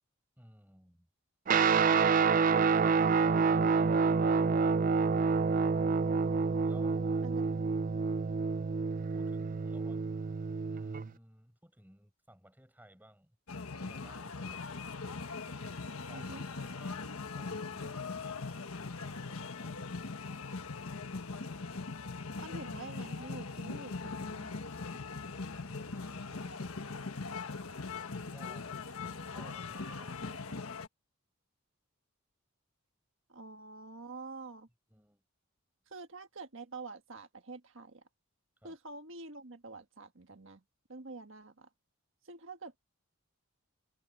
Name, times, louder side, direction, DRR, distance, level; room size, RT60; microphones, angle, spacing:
voice 1, 0.4-1.1 6.6-7.3 9.1-10.0 10.7-13.3 13.8-14.6 16.1-16.3 16.6-18.7 19.0-19.9 24.8-26.7 28.1-30.9 34.9-35.2 38.6-38.7, equal, 10° right, 6.6 m, -58 dB
Guitar, 1.5-11.1, right 5 dB, 40° right, 0.4 m, -28 dB
voice 2, 2.5-3.4 7.2-7.4 16.1-16.4 22.4-24.7 33.3-34.7 35.9-38.0 38.6-40.6 40.9-41.7 42.2-42.8, right 3 dB, 60° right, 1.6 m, -47 dB
sound 1, 13.5-30.9, left 4 dB, 80° left, 1.3 m, -41 dB
head